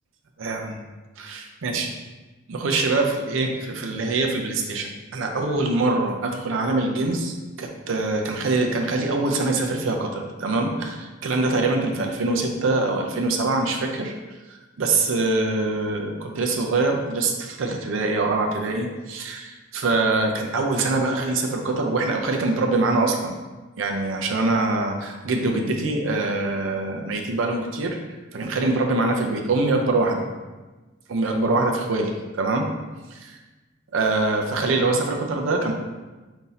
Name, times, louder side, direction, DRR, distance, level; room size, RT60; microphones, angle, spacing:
voice 1, 0.4-0.8 1.2-1.9 2.5-14.1 14.8-23.3 23.8-28.0 28.3-30.3 31.1-32.7 33.1-33.4 33.9-35.7, right 2 dB, 85° right, 2 dB, 0.5 m, -24 dB
4.1 x 2.7 x 3.9 m, 1.2 s
head